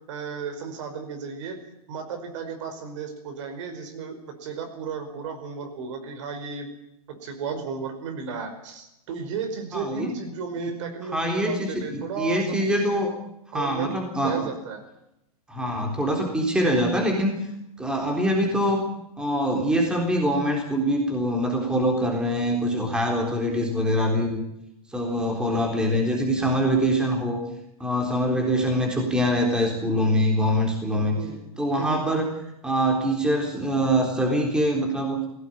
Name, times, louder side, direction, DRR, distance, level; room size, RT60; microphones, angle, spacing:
voice 1, 0.1-1.6 1.9-6.7 7.2-12.4 12.8-13.0 13.5-13.9 14.2-14.8 31.2-31.4 31.8-32.2, right 5 dB, 55° right, 6 dB, 5.2 m, -34 dB
voice 2, 9.7-10.1 10.6-10.7 11.1-13.1 13.5-14.4 15.5-17.3 17.8-18.8 19.2-24.4 24.9-27.4 27.8-31.2 31.6-32.3 32.6-35.2, equal, 5° right, 1 dB, 3.8 m, -24 dB
19.0 x 17.5 x 9.3 m, 0.84 s
hypercardioid pair, 155°, 19 cm